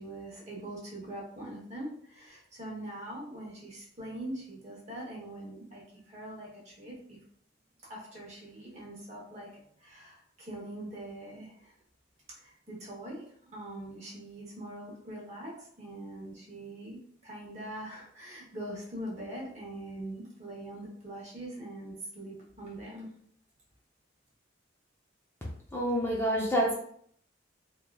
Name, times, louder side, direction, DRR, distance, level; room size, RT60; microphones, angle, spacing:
voice 1, 0.0-7.2 7.9-9.5 9.8-11.7 12.3-13.3 13.5-23.1, right 1 dB, 35° right, -4 dB, 0.9 m, -43 dB
voice 2, 25.7-26.7, equal, 10° left, -5 dB, 0.4 m, -27 dB
3.0 x 2.3 x 2.3 m, 0.63 s
head